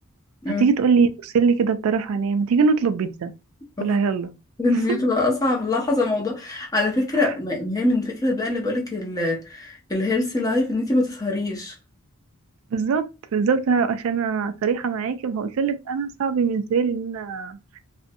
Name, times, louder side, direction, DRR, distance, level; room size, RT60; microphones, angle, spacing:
voice 1, 0.6-3.3 3.8-4.3 4.9-5.0 12.7-13.1 13.3-17.8, right 5 dB, 70° right, 0.3 m, -22 dB
voice 2, 4.6-11.7, left 2 dB, 15° left, 0.6 m, -23 dB
2.5 x 2.1 x 2.6 m
head